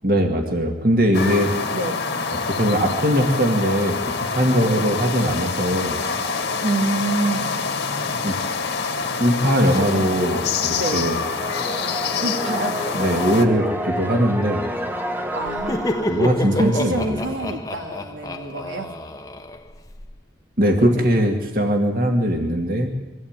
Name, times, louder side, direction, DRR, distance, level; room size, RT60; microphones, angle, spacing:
voice 1, 0.0-1.5 2.5-6.0 8.2-8.4 9.2-11.2 13.0-14.6 16.1-17.2 20.6-22.9, equal, 50° right, 3 dB, 2.1 m, -20 dB
sound 1, 1.1-13.4, left 4 dB, 60° left, 1.9 m, -26 dB
voice 2, 1.7-2.0 4.5-4.9 6.6-7.6 9.7-10.3 10.7-11.0 12.2-12.8 15.3-16.3 16.5-18.9 20.8-20.9, right 2 dB, 80° right, 3 dB, 2.7 m, -27 dB
sound 2, 10.0-17.6, equal, 10° right, 1.2 m, -31 dB
Laughter, 15.4-20.1, left 1 dB, 20° left, 1.1 m, -28 dB
23.0 x 15.5 x 8.9 m, 1.1 s
head